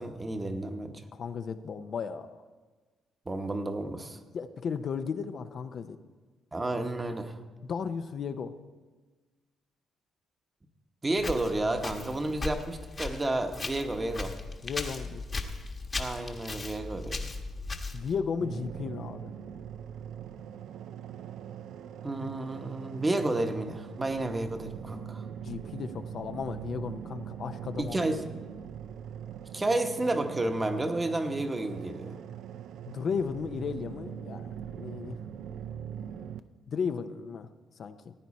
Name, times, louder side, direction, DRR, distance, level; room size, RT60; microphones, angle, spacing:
voice 1, 0.0-1.0 3.3-4.2 6.5-7.4 11.0-14.4 16.0-17.3 22.0-25.3 27.8-28.2 29.5-32.2, right 2 dB, 20° right, 6 dB, 1.0 m, -31 dB
voice 2, 1.1-2.4 4.3-6.0 7.6-8.5 14.6-15.2 17.9-19.3 25.4-28.1 32.9-35.2 36.7-37.5 37.8-38.1, left 6 dB, 55° left, 9 dB, 0.6 m, -35 dB
Walk footsteps, 11.2-18.2, left 3 dB, 35° left, 1.2 m, -37 dB
sound 1, 18.4-36.4, right 9 dB, 80° right, 0.4 m, -42 dB
15.5 x 9.2 x 4.2 m, 1.3 s
cardioid pair, 90°, 0 cm